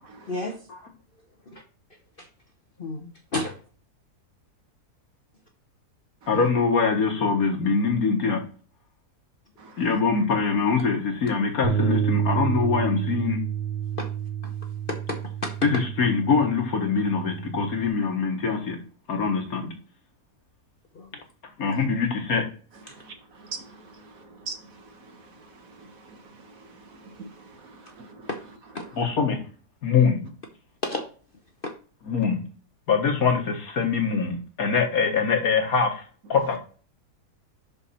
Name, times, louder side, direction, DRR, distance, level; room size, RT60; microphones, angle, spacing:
voice 1, 0.3-0.6 1.5-1.6 2.2-2.3 2.8-3.5 14.0-14.1 14.4-14.5 14.9-15.7 20.9-21.2 28.3-28.4 28.7-28.9 30.8-31.0 31.6-31.7, left 2 dB, 40° left, 3 dB, 1.0 m, -31 dB
voice 2, 6.3-8.4 9.8-13.4 15.6-18.8 19.1-19.7 21.6-22.4 29.0-29.4 29.8-30.3 32.1-32.4 32.9-36.0 36.3-36.6, left 5 dB, 65° left, 3 dB, 2.0 m, -23 dB
voice 3, 9.6-9.9 22.9-28.3, right 4 dB, 60° right, 5 dB, 1.7 m, -44 dB
Bass guitar, 11.6-17.9, right 9 dB, 40° right, 0.6 m, -29 dB
6.2 x 5.5 x 4.3 m, 0.40 s
omnidirectional pair, 1.7 m